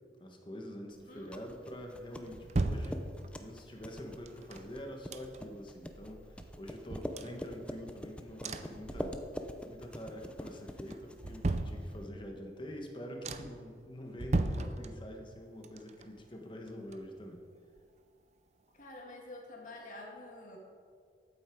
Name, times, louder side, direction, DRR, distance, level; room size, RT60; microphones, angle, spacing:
voice 1, 0.2-3.0 3.4-9.1 9.4-17.4, equal, 30° left, 2 dB, 1.4 m, -46 dB
sound 1, 1.0-12.0, equal, 5° left, 0.6 m, -45 dB
voice 2, 1.1-1.4 18.7-20.6, left 2 dB, 45° left, 0 dB, 1.9 m, -48 dB
sound 2, 1.8-3.5 4.3-5.7 6.0-6.1 6.4-8.0 8.4-9.6 9.9-10.4 10.9-12.3 12.8-12.9 13.2-13.7 14.1-15.3 15.6-17.5 17.8-17.9, right 2 dB, 40° right, 0.5 m, -37 dB
13.5 x 8.6 x 4.6 m, 2.2 s
head